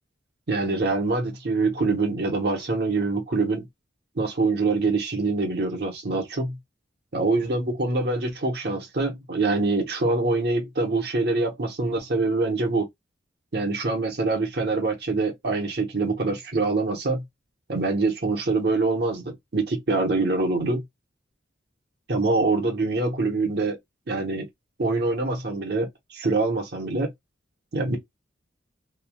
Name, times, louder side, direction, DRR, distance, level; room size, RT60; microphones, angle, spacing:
voice 1, 0.5-3.7 4.2-6.6 7.1-12.9 13.5-17.2 17.7-20.8 22.1-23.8 24.1-24.5 24.8-27.1 27.7-28.0, right 3 dB, 60° right, 0.9 m, -25 dB
3.1 x 2.3 x 2.3 m
head